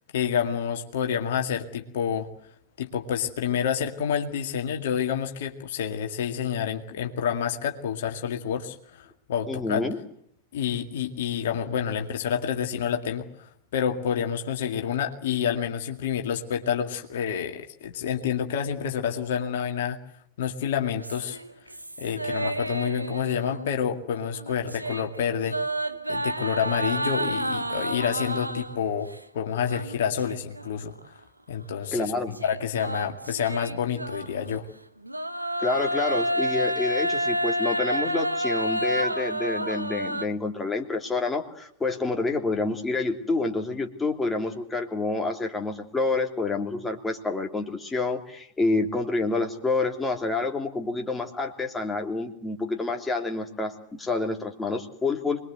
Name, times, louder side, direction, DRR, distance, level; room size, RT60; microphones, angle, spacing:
voice 1, 0.1-2.3 2.8-9.9 10.5-20.0 20.4-21.4 22.0-25.6 26.1-30.9 31.5-32.1 32.4-34.7, left 8 dB, 55° left, 4 dB, 2.1 m, -28 dB
voice 2, 9.5-10.0 31.9-32.4 35.6-55.4, left 3 dB, 10° left, 3 dB, 3.1 m, -28 dB
sound 1, 21.0-23.9 24.2-28.9 29.6-30.7 31.0-31.1 32.3-34.6 35.0-40.2, right 1 dB, 85° right, 1.2 m, -30 dB
25.5 x 21.5 x 8.1 m, 0.68 s
figure-of-eight pair, 90°, 0 cm